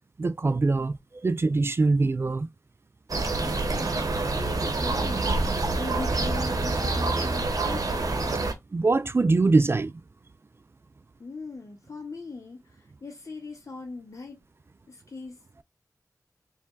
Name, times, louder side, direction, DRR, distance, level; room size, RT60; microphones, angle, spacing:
voice 1, 0.2-2.5 8.7-9.9, right 3 dB, 40° right, 0.3 m, -23 dB
sound 1, 3.1-8.5, right 3 dB, 65° right, 0.9 m, -27 dB
voice 2, 3.4-8.2 11.2-14.4 14.9-15.4, left 3 dB, 55° left, 1.6 m, -40 dB
4.5 x 3.2 x 2.3 m
wide cardioid pair, 75°, 7 cm